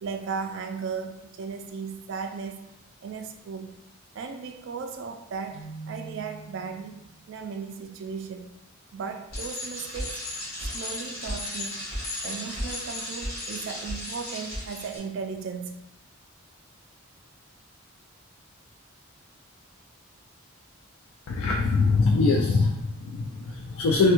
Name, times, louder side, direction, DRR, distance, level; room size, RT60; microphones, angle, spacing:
voice 1, 0.0-2.6 3.0-3.8 4.1-7.0 7.3-8.5 8.9-10.2 10.6-11.9 12.2-15.9, right 5 dB, 60° right, 0.3 m, -36 dB
Keyboard (musical), 5.5-7.4, right 3 dB, 15° left, 0.7 m, -43 dB
Bicycle, 9.3-15.0, left 1 dB, 45° left, 1.3 m, -34 dB
voice 2, 21.3-24.1, left 3 dB, 70° left, 0.3 m, -23 dB
3.2 x 2.2 x 2.9 m
head